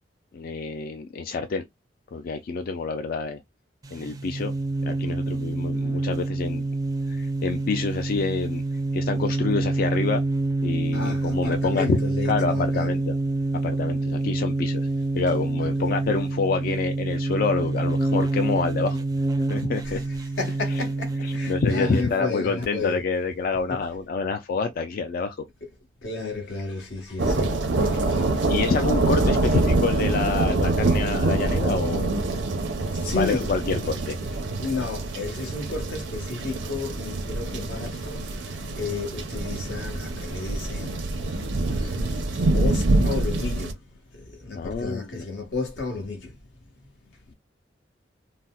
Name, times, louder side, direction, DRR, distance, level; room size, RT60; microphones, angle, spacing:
voice 1, 0.3-1.6 2.1-3.4 3.9-4.5 4.8-6.7 7.1-8.6 8.9-10.2 10.6-12.0 12.3-13.1 13.6-14.9 15.1-19.0 19.4-20.0 21.2-25.4 28.5-32.2 33.2-34.2 44.6-45.2, left 4 dB, 50° left, 0.3 m, -27 dB
sound 1, 3.8-22.1, right 2 dB, 20° right, 0.4 m, -27 dB
voice 2, 10.9-12.9 15.6-15.9 19.8-23.0 23.7-23.8 26.0-28.5 32.8-33.5 34.6-47.3, left 3 dB, 85° left, 1.1 m, -33 dB
sound 2, 27.2-43.7, right 2 dB, 85° right, 0.6 m, -25 dB
4.0 x 2.0 x 2.2 m
head